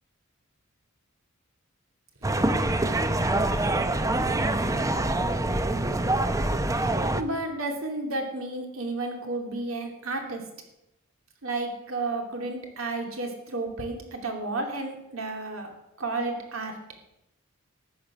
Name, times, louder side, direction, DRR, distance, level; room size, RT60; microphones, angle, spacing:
sound 1, 2.2-7.2, right 2 dB, 15° right, 0.7 m, -25 dB
voice 1, 6.8-10.4 11.4-15.7 16.0-16.7, right 2 dB, 70° right, 3 dB, 2.8 m, -32 dB
13.0 x 9.9 x 6.1 m, 0.87 s
head